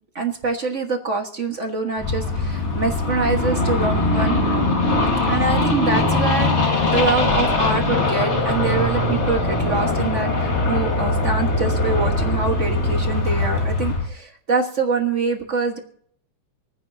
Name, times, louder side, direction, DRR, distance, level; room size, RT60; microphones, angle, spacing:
voice 1, 0.1-4.4 5.3-15.8, right 4 dB, 45° right, 3 dB, 0.9 m, -25 dB
sound 1, 2.0-14.1, left 2 dB, 35° left, 1.2 m, -21 dB
27.0 x 10.0 x 2.7 m, 0.63 s
omnidirectional pair, 3.3 m